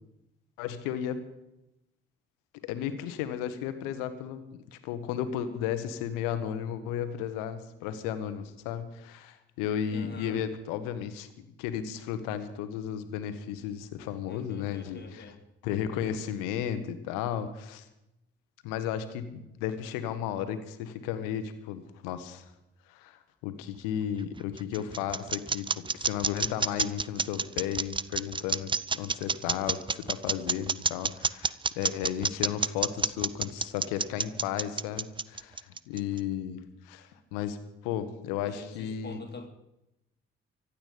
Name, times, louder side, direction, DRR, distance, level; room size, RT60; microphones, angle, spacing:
voice 1, 0.6-1.2 2.6-11.3 11.6-15.3 15.6-17.9 18.6-22.4 22.9-37.6 37.8-39.2, left 9 dB, 75° left, 11 dB, 1.4 m, -34 dB
voice 2, 9.9-10.4 14.3-15.4 38.5-39.5, left 4 dB, 30° left, 2 dB, 3.0 m, -45 dB
sound 1, 24.2-36.2, right 4 dB, 15° right, 0.5 m, -29 dB
24.5 x 8.7 x 5.2 m, 0.88 s
hypercardioid pair, 45°, 32 cm